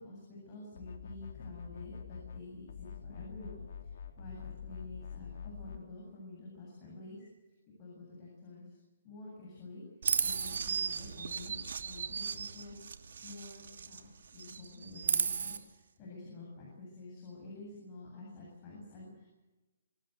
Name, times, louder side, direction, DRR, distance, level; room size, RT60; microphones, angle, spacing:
voice 1, 0.0-7.2 7.8-8.8 9.0-9.8 10.2-11.6 11.8-12.8 13.2-19.3, left 2 dB, 25° left, -3 dB, 7.9 m, -49 dB
sound 1, 0.8-2.4 2.7-5.8, left 7 dB, 55° left, 3.0 m, -46 dB
Chirp tweet, 10.0-14.1 14.3-15.6, right 6 dB, 70° right, 2.7 m, -35 dB
26.0 x 18.0 x 8.1 m, 1.1 s
hypercardioid pair, 170°, 0 cm